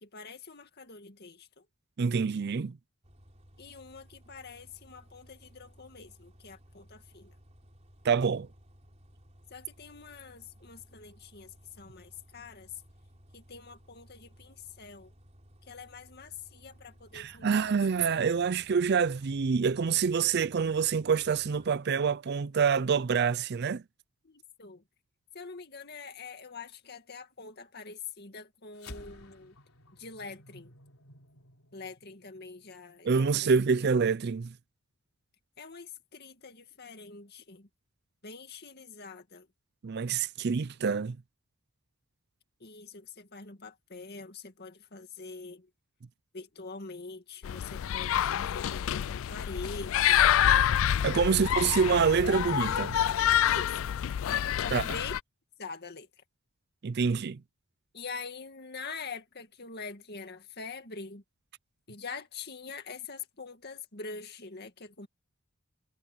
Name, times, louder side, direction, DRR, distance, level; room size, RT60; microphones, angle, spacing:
voice 1, 0.0-1.6 3.6-7.3 9.5-11.5 11.8-12.7 13.3-15.1 15.7-17.7 24.2-24.8 25.3-29.5 30.0-30.7 31.7-33.5 35.6-37.7 38.2-39.5 42.6-45.7 46.3-50.3 51.3-51.4 53.4-53.9 54.6-55.1 55.6-56.1 57.9-61.2 61.9-65.1, left 4 dB, 50° left, 2.2 m, -44 dB
voice 2, 2.0-2.8 8.0-8.5 17.1-23.8 33.0-34.5 39.8-41.2 50.8-53.0 54.7-54.8 56.8-57.4, right 6 dB, 50° right, 0.4 m, -26 dB
Bus, 3.0-21.7, equal, 30° right, 4.6 m, -58 dB
sound 1, 28.7-33.4, left 2 dB, 85° left, 3.7 m, -52 dB
sound 2, 47.4-55.2, left 10 dB, 65° left, 0.3 m, -27 dB
head